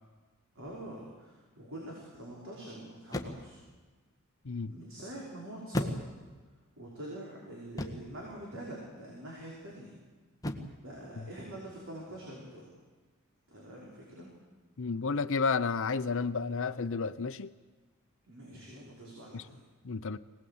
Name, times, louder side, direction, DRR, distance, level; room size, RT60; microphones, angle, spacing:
sound 1, 0.6-1.0 3.1-3.6 5.7-6.5 7.8-8.2 10.4-10.9, left 1 dB, 15° left, 1.6 m, -36 dB
voice 1, 0.6-3.6 4.7-5.9 6.8-9.9 10.8-12.7 13.5-14.3 18.3-19.6, right 1 dB, 65° right, 5.5 m, -45 dB
voice 2, 14.8-17.5 19.3-19.4 19.8-20.2, left 4 dB, 65° left, 0.7 m, -31 dB
24.0 x 19.0 x 8.7 m
head